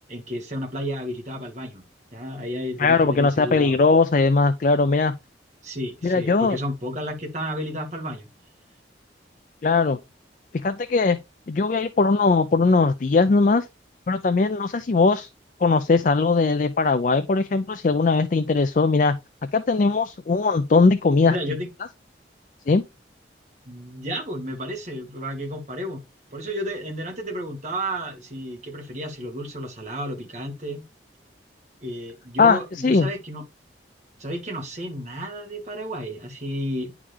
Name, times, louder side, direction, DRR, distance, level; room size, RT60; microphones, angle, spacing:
voice 1, 0.1-1.8 2.1-3.8 5.6-8.3 21.3-21.7 23.6-26.0 26.3-30.8 31.8-33.4 34.2-36.9, equal, 40° right, 1.6 m, -32 dB
voice 2, 2.8-5.1 6.0-6.6 9.6-10.0 10.6-11.2 11.5-13.7 14.1-15.3 15.6-19.1 19.5-21.4 22.7-22.8 32.4-33.1, left 4 dB, 45° left, 0.4 m, -19 dB
9.8 x 3.7 x 3.2 m
head